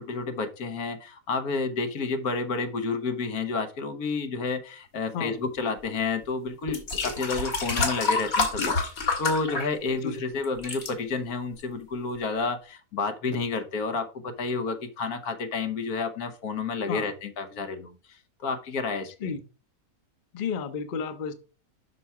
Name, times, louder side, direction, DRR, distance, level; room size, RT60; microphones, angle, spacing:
voice 1, 0.0-8.7 9.2-19.3, left 4 dB, 85° left, 7 dB, 1.6 m, -30 dB
sound 1, 6.1-6.2 6.7-10.2 10.4-10.9 11.6-11.7, left 3 dB, 70° left, 2.2 m, -28 dB
voice 2, 20.3-21.3, left 6 dB, 45° left, 10 dB, 0.8 m, -32 dB
6.1 x 5.7 x 4.6 m, 0.35 s
omnidirectional pair, 1.5 m